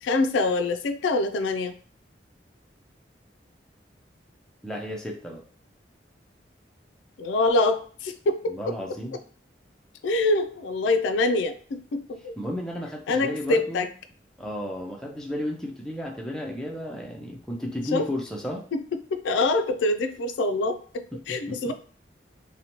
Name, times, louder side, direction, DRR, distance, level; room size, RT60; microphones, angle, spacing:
voice 1, 0.0-1.7 7.2-8.6 10.0-12.3 13.1-13.9 17.9-18.0 18.7-18.8 19.1-21.7, left 2 dB, 85° left, 8 dB, 0.3 m, -25 dB
voice 2, 4.6-5.4 8.5-9.2 12.4-13.9 14.4-18.6 21.3-21.6, equal, 5° left, -2 dB, 0.4 m, -33 dB
2.8 x 2.1 x 2.8 m, 0.44 s
head